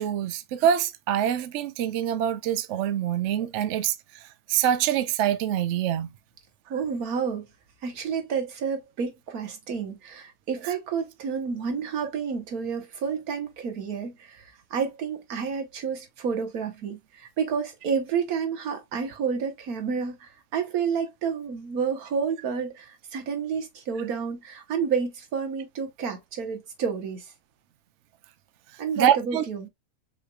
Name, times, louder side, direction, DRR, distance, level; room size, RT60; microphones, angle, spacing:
voice 1, 0.0-4.0 4.5-6.1 10.6-10.7 29.0-29.4, right 10 dB, 65° right, 0.8 m, -25 dB
voice 2, 6.7-7.5 7.8-14.4 14.7-27.2 28.8-29.7, right 6 dB, 85° right, 1.6 m, -30 dB
5.6 x 3.2 x 2.3 m
omnidirectional pair, 1.5 m